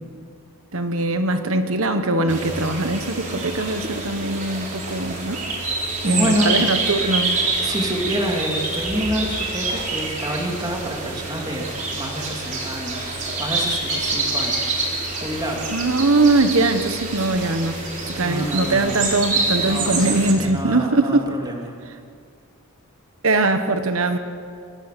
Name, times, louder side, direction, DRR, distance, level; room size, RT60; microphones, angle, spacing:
voice 1, 0.7-5.4 6.0-7.4 15.7-17.8 18.2-21.3 23.2-24.2, right 2 dB, 65° right, 8 dB, 1.3 m, -21 dB
sound 1, 2.3-20.3, right 3 dB, 35° right, 4.3 m, -27 dB
voice 2, 6.0-6.5 7.6-15.0 15.2-15.7 18.2-19.0 19.6-21.7, equal, 20° right, 0 dB, 3.1 m, -28 dB
24.5 x 20.0 x 6.9 m, 2.2 s
head